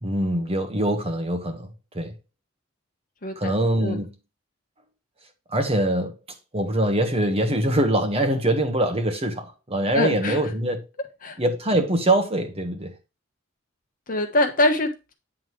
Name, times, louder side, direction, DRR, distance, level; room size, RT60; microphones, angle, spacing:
voice 1, 0.0-1.7 1.9-2.2 3.4-4.1 5.5-6.2 6.5-10.9 11.4-12.9, right 1 dB, 30° right, 1.3 m, -23 dB
voice 2, 3.2-3.5 3.8-4.0 9.9-10.4 11.2-11.4 14.1-15.1, left 1 dB, 45° left, 1.3 m, -23 dB
9.3 x 3.8 x 4.7 m
head